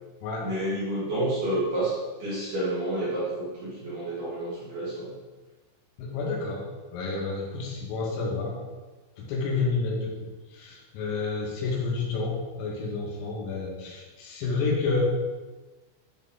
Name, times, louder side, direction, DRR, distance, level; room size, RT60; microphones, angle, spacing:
voice 1, 0.4-5.1, right 1 dB, 50° right, -10 dB, 3.3 m, -29 dB
voice 2, 6.0-6.6 6.9-8.6 9.2-10.1 10.5-15.0, left 4 dB, 90° left, -2 dB, 4.1 m, -29 dB
10.5 x 4.3 x 3.7 m, 1.2 s
omnidirectional pair, 5.9 m